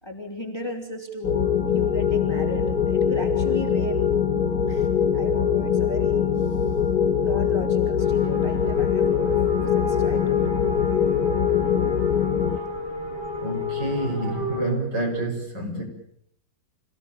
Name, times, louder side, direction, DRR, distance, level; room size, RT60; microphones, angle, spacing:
voice 1, 0.0-4.1 4.7-6.3 7.2-9.4 9.7-10.4, left 2 dB, 10° left, 1 dB, 3.4 m, -35 dB
sound 1, 1.2-12.6, left 7 dB, 50° left, 2.1 m, -22 dB
sound 2, 8.0-14.6, left 6 dB, 80° right, 7.9 m, -31 dB
voice 2, 13.4-15.8, right 2 dB, 60° right, 1 dB, 6.8 m, -28 dB
27.5 x 17.0 x 8.9 m, 0.69 s
omnidirectional pair, 2.1 m